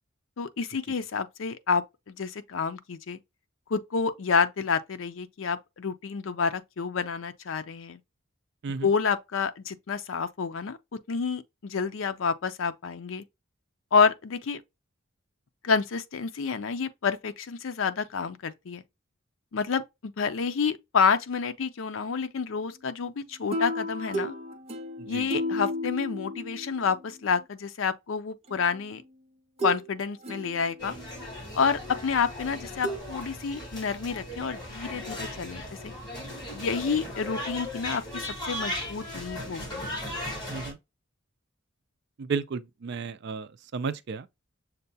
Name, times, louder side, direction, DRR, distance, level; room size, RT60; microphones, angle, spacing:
voice 1, 0.4-3.2 3.7-8.0 8.8-10.8 11.1-13.2 13.9-14.6 15.6-18.8 19.5-24.3 25.0-29.0 29.6-30.9 31.5-35.9 36.5-39.9, left 5 dB, 70° left, 0.5 m, -29 dB
sound 1, 23.5-27.1 28.5-28.6 29.6-29.9 30.2-31.1 32.8-33.0, equal, 30° right, 0.7 m, -33 dB
voice 2, 25.0-25.3 40.5-40.8 42.2-44.3, right 5 dB, 55° right, 0.4 m, -33 dB
sound 2, 30.8-40.7, left 1 dB, 20° left, 1.9 m, -37 dB
6.6 x 2.2 x 2.6 m
head